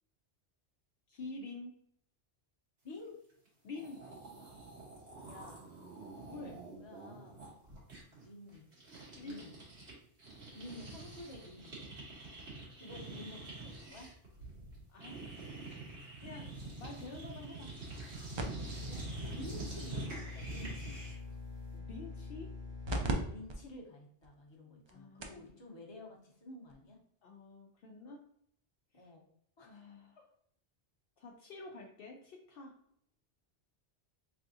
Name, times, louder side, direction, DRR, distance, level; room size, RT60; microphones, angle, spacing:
voice 1, 1.1-1.7 3.6-4.0 6.3-6.6 9.1-9.5 14.9-15.3 16.2-17.7 21.7-22.5 24.9-25.4 27.2-28.2 28.9-29.1 29.7-30.2 31.2-32.7, left 3 dB, 65° left, 1 dB, 0.7 m, -48 dB
voice 2, 2.8-3.2 4.3-4.6 5.3-5.7 6.5-7.4 8.2-8.7 9.2-9.6 10.5-11.8 12.8-14.1 18.8-21.0 23.2-27.0 28.9-29.3 29.6-29.8, left 2 dB, 30° left, -1 dB, 0.8 m, -51 dB
sound 1, 3.5-3.6 3.7-9.9 10.2-21.3, right 2 dB, 90° right, 1.6 m, -46 dB
sound 2, 18.4-23.1 23.5-23.6 24.2-24.3 24.9-25.0 25.2-25.5 26.7-26.8, equal, 45° right, 0.3 m, -41 dB
3.5 x 3.4 x 2.6 m, 0.68 s
omnidirectional pair, 1.1 m